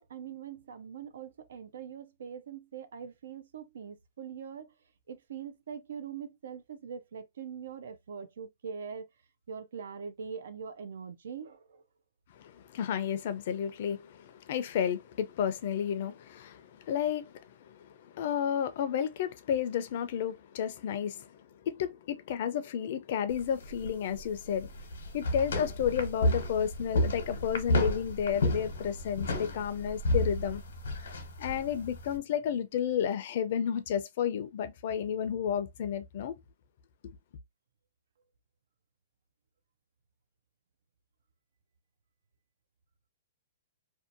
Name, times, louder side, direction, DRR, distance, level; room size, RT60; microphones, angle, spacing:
voice 1, 0.0-4.7 5.1-9.1 9.5-11.8, right 7 dB, 80° right, 0.4 m, -42 dB
voice 2, 12.3-24.7 25.1-30.6 31.4-36.3 37.0-37.1, left 8 dB, 55° left, 0.4 m, -32 dB
sound 1, 23.3-32.2, left 1 dB, 85° left, 0.9 m, -32 dB
2.6 x 2.1 x 2.5 m
hypercardioid pair, 155°, 0 cm